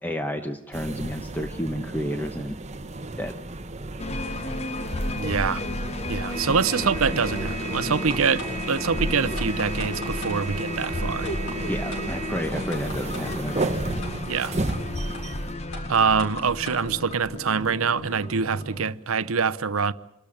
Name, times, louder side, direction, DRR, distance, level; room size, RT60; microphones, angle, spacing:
voice 1, 0.0-2.6 3.2-3.3 11.6-13.7, equal, 10° left, 0.9 m, -31 dB
sound 1, 0.7-15.5, right 2 dB, 30° right, 0.9 m, -33 dB
sound 2, 4.0-18.9, left 1 dB, 30° left, 1.0 m, -32 dB
voice 2, 5.1-5.6 6.1-11.3 14.2-14.6 15.9-19.9, right 5 dB, 75° right, 0.7 m, -25 dB
sound 3, 8.1-8.5 8.8-8.9 9.4-10.4 10.8-10.9 11.3-11.6 11.9-12.0 12.4-13.4 14.0-14.1 14.4-14.8 15.1-15.2 15.7-16.8, left 1 dB, 70° left, 7.5 m, -39 dB
27.0 x 13.5 x 9.9 m
head